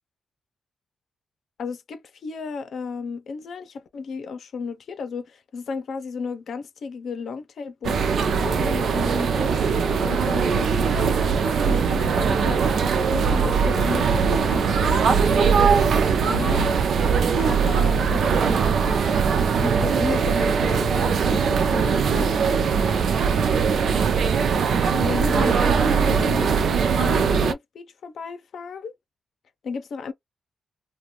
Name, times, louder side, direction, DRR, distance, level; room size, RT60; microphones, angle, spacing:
voice 1, 1.6-8.0 8.3-9.6 10.0-12.6 13.1-16.7 17.4-19.0 19.6-22.4 24.9-26.5 26.9-28.9 29.6-30.1, left 5 dB, 65° left, 0.6 m, -33 dB
sound 1, 7.8-27.5, right 6 dB, 70° right, 0.4 m, -21 dB
2.5 x 2.2 x 3.0 m
wide cardioid pair, 140°, 0 cm